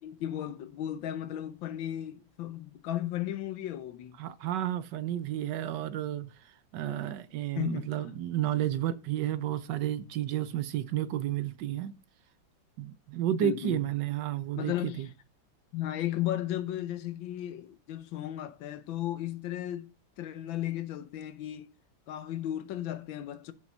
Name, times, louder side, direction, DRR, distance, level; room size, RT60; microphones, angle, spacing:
voice 1, 0.0-4.2 7.6-7.9 13.4-13.8 14.6-15.0 15.7-19.9 20.2-21.7 22.1-23.5, left 12 dB, 80° left, 1.5 m, -35 dB
voice 2, 4.2-11.9 12.8-15.1, right 12 dB, 70° right, 1.2 m, -32 dB
7.8 x 5.4 x 5.4 m
omnidirectional pair, 2.1 m